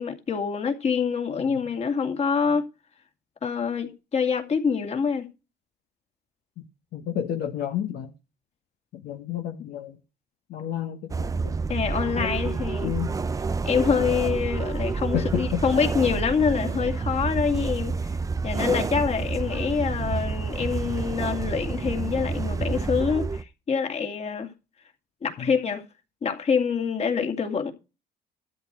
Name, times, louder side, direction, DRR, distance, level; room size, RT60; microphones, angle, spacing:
voice 1, 0.0-2.6 3.4-5.3 11.7-12.9 13.6-18.1 18.4-24.5 25.2-25.8 26.2-27.7, left 6 dB, 40° left, 2.4 m, -26 dB
voice 2, 6.9-8.1 8.9-10.0 10.5-11.6 12.1-13.2 15.1-15.6 25.4-25.5, left 10 dB, 70° left, 1.3 m, -31 dB
sound 1, 11.1-23.4, right 4 dB, 20° right, 0.5 m, -29 dB
12.5 x 7.6 x 4.6 m
cardioid pair, 110°, 17 cm